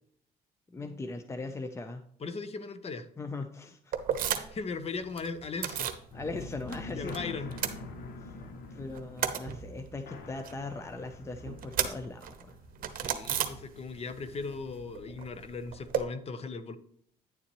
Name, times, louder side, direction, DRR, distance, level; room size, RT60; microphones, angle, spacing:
voice 1, 0.7-2.0 3.2-3.9 4.5-4.6 6.1-7.3 8.2-8.4 8.7-12.6, left 3 dB, 15° left, 8 dB, 0.6 m, -39 dB
voice 2, 2.2-3.1 4.1-4.2 4.5-5.9 6.9-7.5 12.9-16.8, left 4 dB, 35° left, 11 dB, 0.9 m, -38 dB
sound 1, 3.9-4.7 4.9-6.0 6.4-7.2 7.4-8.4 8.8-14.1 14.4-16.0, right 9 dB, 55° right, 1.0 m, -34 dB
sound 2, 6.1-15.6, left 3 dB, 65° left, 1.3 m, -47 dB
9.8 x 7.1 x 3.0 m, 0.64 s
cardioid pair, 110°, 17 cm